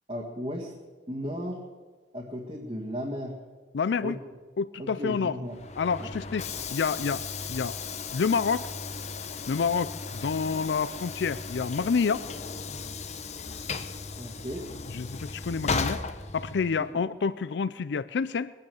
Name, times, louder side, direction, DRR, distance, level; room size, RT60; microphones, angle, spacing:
voice 1, 0.1-0.7 1.1-1.6 2.1-3.4 4.0-4.1 4.8-5.6 6.0-6.1 14.2-14.7 16.8-17.0, equal, 35° right, -2 dB, 1.7 m, -35 dB
voice 2, 3.7-4.2 4.6-5.4 5.8-7.2 7.5-7.8 8.1-8.7 9.5-12.3 14.9-16.0 16.3-18.5, left 5 dB, 70° left, 15 dB, 0.4 m, -28 dB
Train / Sliding door, 5.5-16.9, left 4 dB, 40° left, 0.8 m, -36 dB
21.0 x 9.5 x 7.0 m, 1.4 s
head